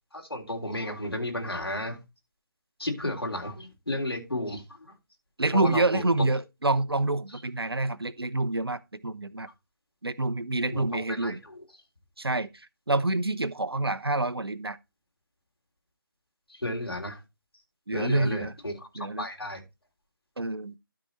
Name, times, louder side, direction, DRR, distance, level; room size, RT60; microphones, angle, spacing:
voice 1, 0.1-2.0 2.8-4.9 5.5-6.3 10.7-11.6 16.5-17.2 17.9-18.7 19.0-19.6, left 1 dB, 85° left, 3.6 m, -33 dB
voice 2, 5.4-9.5 10.0-11.4 12.2-14.8 17.9-18.5 19.0-19.3 20.4-20.8, right 2 dB, 85° right, 0.8 m, -27 dB
12.5 x 4.9 x 4.3 m
figure-of-eight pair, 150°, 12 cm